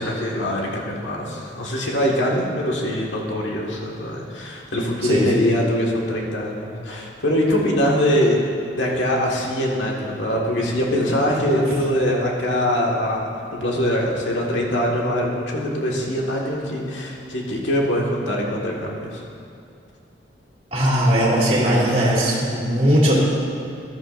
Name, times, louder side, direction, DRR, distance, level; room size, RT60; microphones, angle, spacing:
voice 1, 0.0-8.4 8.7-19.2, equal, 90° left, -2 dB, 1.7 m, -23 dB
voice 2, 5.0-5.4 11.5-11.6 20.7-23.2, equal, 35° right, -6 dB, 2.4 m, -19 dB
14.5 x 11.5 x 2.6 m, 2.5 s
head